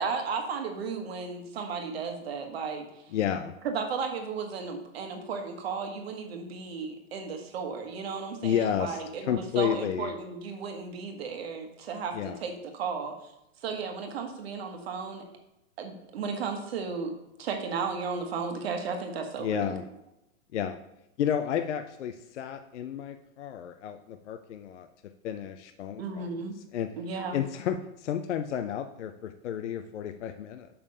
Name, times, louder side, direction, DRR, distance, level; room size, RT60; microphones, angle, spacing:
voice 1, 0.0-3.0 3.6-13.3 13.6-15.2 15.8-17.1 17.4-19.8 26.0-26.5 27.0-27.4, right 5 dB, 45° right, 4 dB, 1.4 m, -34 dB
voice 2, 3.1-3.5 8.4-9.0 9.3-10.2 12.1-12.4 19.4-19.8 20.5-20.8 21.2-24.9 25.2-26.3 26.7-26.9 27.3-30.7, left 9 dB, 60° left, 8 dB, 0.6 m, -31 dB
6.7 x 5.6 x 5.4 m, 0.88 s
hypercardioid pair, 175°, 41 cm